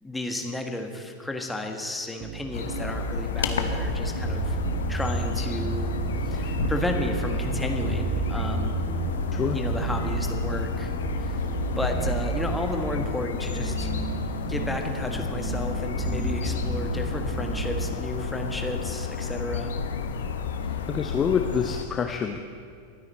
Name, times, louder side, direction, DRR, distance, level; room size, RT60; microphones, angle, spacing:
voice 1, 0.0-4.6 4.9-5.9 6.2-8.8 9.5-11.5 11.8-13.9 14.5-19.7, left 1 dB, 5° left, 3 dB, 1.5 m, -33 dB
sound 1, 2.2-17.9, right 8 dB, 30° right, 0.8 m, -32 dB
sound 2, 2.5-21.8, left 6 dB, 65° left, 1.0 m, -31 dB
voice 2, 20.7-22.4, left 7 dB, 20° left, 5 dB, 0.7 m, -27 dB
23.0 x 9.6 x 4.2 m, 2.3 s
figure-of-eight pair, 90°, 0 cm